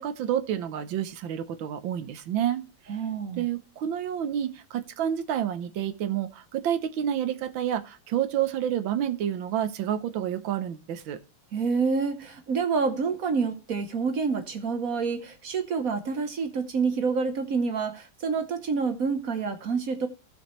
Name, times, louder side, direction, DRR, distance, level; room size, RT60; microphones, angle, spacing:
voice 1, 0.0-2.6 3.4-11.2, right 10 dB, 80° right, 1.7 m, -29 dB
voice 2, 2.9-3.4 11.5-20.1, right 5 dB, 50° right, 1.3 m, -28 dB
15.0 x 6.4 x 3.1 m
omnidirectional pair, 2.1 m